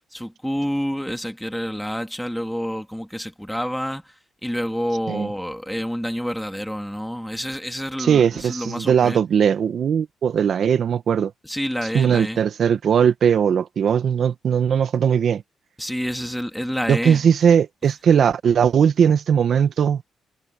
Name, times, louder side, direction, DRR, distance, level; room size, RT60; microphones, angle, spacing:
voice 1, 0.1-4.1 4.4-9.2 11.4-12.4 15.8-17.2, equal, ahead, 3.1 m, -28 dB
voice 2, 8.0-11.3 11.9-15.4 16.9-20.0, right 7 dB, 60° right, 1.2 m, -19 dB
cardioid pair, 90°, 0 cm